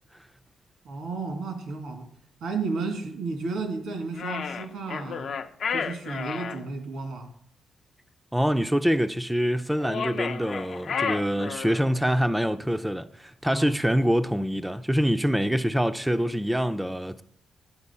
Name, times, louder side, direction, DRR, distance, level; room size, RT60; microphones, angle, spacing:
voice 1, 0.9-2.1 2.4-5.3 5.7-7.3 13.5-13.7, right 4 dB, 85° right, 1.7 m, -32 dB
sound 1, 4.2-6.6 9.8-11.9, left 6 dB, 60° left, 0.5 m, -32 dB
voice 2, 8.3-17.2, equal, 5° right, 0.3 m, -25 dB
9.9 x 4.0 x 5.4 m
cardioid pair, 100°, 0 cm